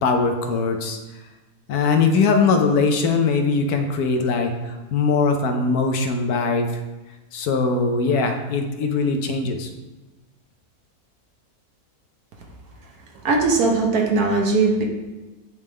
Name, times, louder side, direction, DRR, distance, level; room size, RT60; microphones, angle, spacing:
voice 1, 0.0-1.0 1.7-6.7 7.3-9.7, left 4 dB, 80° left, 5 dB, 1.2 m, -21 dB
voice 2, 13.2-14.8, right 3 dB, 70° right, 0 dB, 1.5 m, -19 dB
9.6 x 3.5 x 3.3 m, 1.1 s
omnidirectional pair, 1.6 m